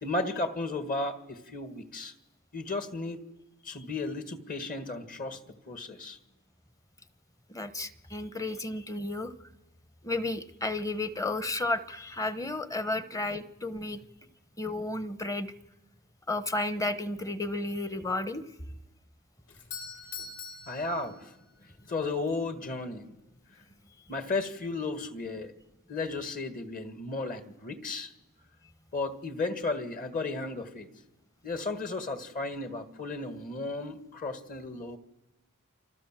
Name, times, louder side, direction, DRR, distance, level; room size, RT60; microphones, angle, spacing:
voice 1, 0.0-2.1 2.5-3.2 3.6-6.2 20.7-21.3 21.6-23.1 23.5-23.6 24.1-25.5 25.9-28.1 28.9-30.9 31.4-35.0, left 3 dB, 40° left, 10 dB, 1.8 m, -34 dB
voice 2, 7.5-9.3 10.0-14.0 14.6-15.5 16.3-18.4, left 2 dB, 15° left, 13 dB, 1.0 m, -32 dB
Doorbell, 19.5-21.6, left 5 dB, 60° left, 3.0 m, -43 dB
29.5 x 26.0 x 7.5 m, 1.0 s
head